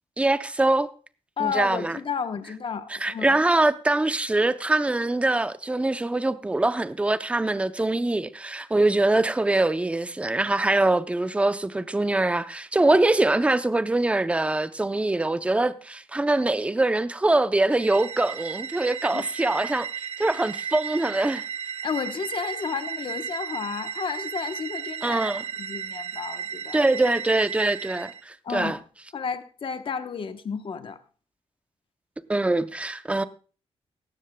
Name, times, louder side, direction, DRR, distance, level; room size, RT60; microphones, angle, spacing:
voice 1, 0.2-0.9 1.4-2.0 2.9-19.9 20.2-21.4 25.0-25.4 26.7-28.8 32.3-33.2, right 2 dB, 10° right, 0.6 m, -23 dB
voice 2, 1.4-3.4 19.1-19.2 21.8-25.2 25.6-26.8 28.4-28.8 29.1-31.0, left 6 dB, 50° left, 1.0 m, -32 dB
sound 1, 17.7-28.2, right 7 dB, 70° right, 1.1 m, -35 dB
17.0 x 14.0 x 2.2 m
wide cardioid pair, 160°, 11 cm